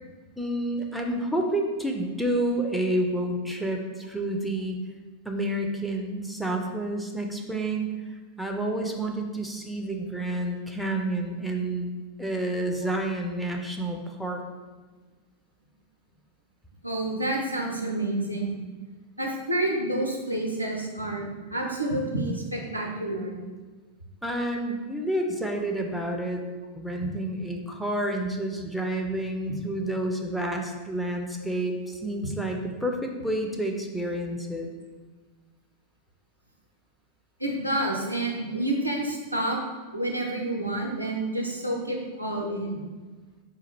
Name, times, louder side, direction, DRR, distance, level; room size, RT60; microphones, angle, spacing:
voice 1, 0.4-4.8 5.2-7.9 8.4-11.9 12.2-14.4 24.2-26.4 26.7-34.7, right 1 dB, ahead, 2 dB, 0.5 m, -29 dB
voice 2, 16.8-18.6 19.2-23.4 37.4-39.6 39.9-42.9, right 1 dB, 90° right, 0 dB, 0.6 m, -29 dB
4.0 x 2.4 x 4.4 m, 1.3 s
figure-of-eight pair, 90°, 0 cm